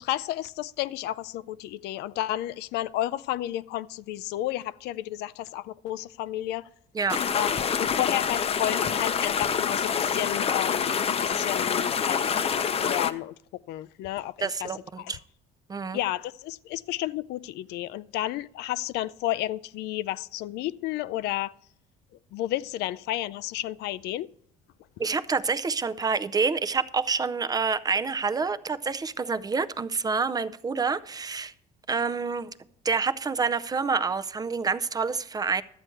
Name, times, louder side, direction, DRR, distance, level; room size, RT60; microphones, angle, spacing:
voice 1, 0.0-6.7 7.3-7.5 7.8-10.9 11.2-12.5 12.8-14.7 15.0-15.1 15.9-21.5 22.3-24.3, left 14 dB, 80° left, 0.4 m, -32 dB
sound 1, 7.1-13.1, left 7 dB, 35° left, 0.6 m, -26 dB
voice 2, 14.4-15.2 15.7-16.0 25.0-31.5 31.9-32.5 32.8-35.6, right 5 dB, 20° right, 0.5 m, -27 dB
12.5 x 7.8 x 4.5 m
cardioid pair, 110°, 17 cm